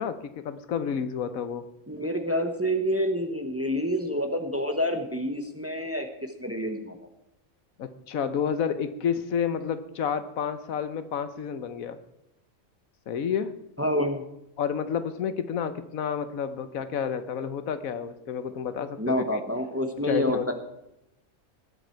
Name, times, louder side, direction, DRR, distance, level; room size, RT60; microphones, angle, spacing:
voice 1, 0.0-1.6 7.8-12.0 13.1-13.5 14.6-19.2 20.0-20.5, left 7 dB, 80° left, 12 dB, 1.3 m, -30 dB
voice 2, 1.9-7.0 13.8-14.2 19.0-20.5, equal, 10° right, 6 dB, 1.1 m, -28 dB
19.5 x 7.7 x 4.5 m, 0.86 s
omnidirectional pair, 1.5 m